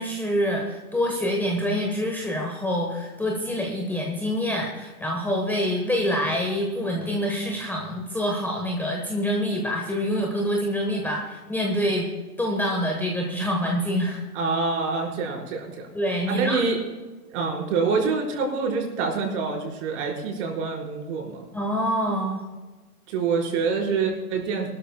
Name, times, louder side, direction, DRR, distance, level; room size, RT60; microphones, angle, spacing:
voice 1, 0.0-12.1 12.4-14.2 15.9-16.6 21.5-22.4, equal, 5° left, -1 dB, 1.2 m, -26 dB
voice 2, 14.3-15.9 16.3-16.8 17.3-21.4 23.1-24.7, right 4 dB, 50° right, -1 dB, 5.0 m, -26 dB
24.0 x 13.0 x 2.3 m, 1.2 s
hypercardioid pair, 130°, 46 cm